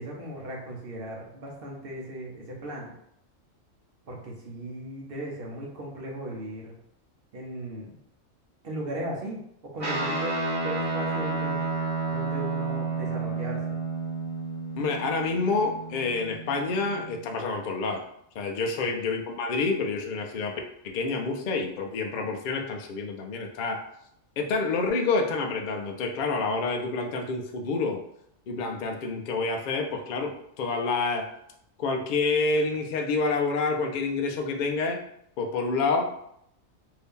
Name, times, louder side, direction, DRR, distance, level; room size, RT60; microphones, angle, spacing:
voice 1, 0.0-2.9 4.1-6.8 7.3-8.0 8.6-9.4 9.7-11.6 12.1-13.8, right 1 dB, 50° right, -2 dB, 0.9 m, -37 dB
Guitar, 9.8-17.4, right 3 dB, 30° right, 1.1 m, -31 dB
voice 2, 14.8-18.0 18.3-23.8 24.4-28.0 28.5-31.3 31.8-35.0 35.4-36.2, left 3 dB, 65° left, 2 dB, 0.4 m, -28 dB
2.7 x 2.7 x 3.5 m, 0.74 s
omnidirectional pair, 1.4 m